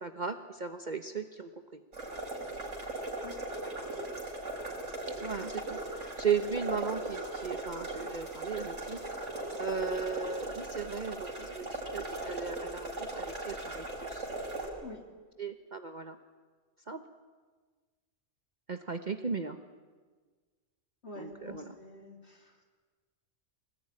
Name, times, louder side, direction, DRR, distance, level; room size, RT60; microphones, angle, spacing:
voice 1, 0.0-1.8 5.2-9.0 9.6-14.3 15.4-16.2 16.9-17.0 18.7-19.6 21.2-21.7, right 6 dB, 40° right, 7 dB, 1.1 m, -36 dB
sound 1, 1.9-14.7, right 2 dB, 75° right, 5.6 m, -38 dB
voice 2, 21.0-22.6, left 2 dB, 60° left, 3 dB, 3.2 m, -47 dB
24.5 x 19.5 x 9.9 m, 1.4 s
omnidirectional pair, 1.3 m